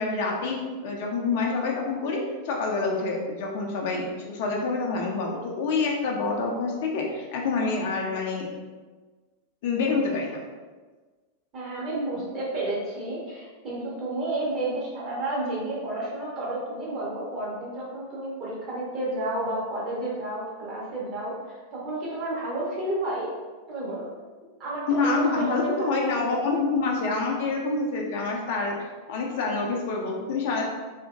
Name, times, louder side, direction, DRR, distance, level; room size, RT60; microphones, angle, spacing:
voice 1, 0.0-8.5 9.6-10.4 24.9-28.8 29.1-30.6, left 3 dB, 50° left, 0 dB, 0.5 m, -27 dB
voice 2, 11.5-21.3 21.7-23.3 23.7-24.1 24.6-26.2, right 1 dB, 35° right, -5 dB, 1.0 m, -31 dB
2.8 x 2.5 x 2.4 m, 1.3 s
figure-of-eight pair, 90°, 0 cm